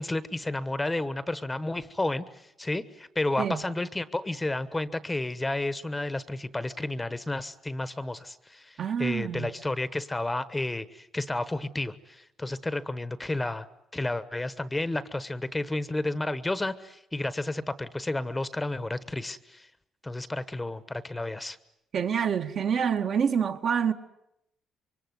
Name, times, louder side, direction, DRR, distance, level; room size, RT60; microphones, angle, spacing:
voice 1, 0.0-13.7 13.9-19.7 20.0-21.6, left 2 dB, 10° left, 1.1 m, -31 dB
voice 2, 8.8-9.5 21.9-23.9, right 7 dB, 55° right, 1.9 m, -27 dB
26.0 x 23.5 x 9.5 m
cardioid pair, 120°, 0 cm